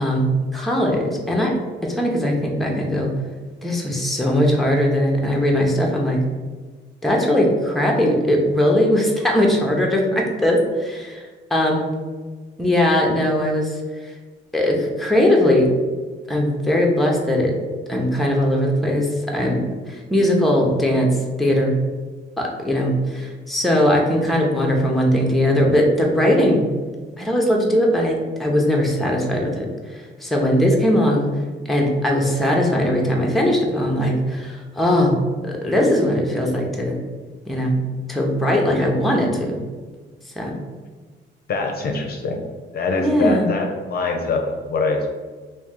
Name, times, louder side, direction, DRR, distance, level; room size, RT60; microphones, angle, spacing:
voice 1, 0.0-1.5 1.9-3.1 3.6-6.2 7.0-11.9 12.6-13.7 14.5-15.7 16.3-17.5 17.9-19.1 19.3-21.1 21.4-21.7 22.4-26.6 27.2-29.7 30.2-31.3 31.7-35.2 35.4-37.0 37.5-37.8 38.1-39.6 40.4-40.6 43.0-43.5, left 1 dB, ahead, -1 dB, 0.7 m, -19 dB
voice 2, 41.5-42.4 42.7-45.1, left 3 dB, 50° left, 2 dB, 0.6 m, -23 dB
3.0 x 2.7 x 3.7 m, 1.4 s
cardioid pair, 90°, 20 cm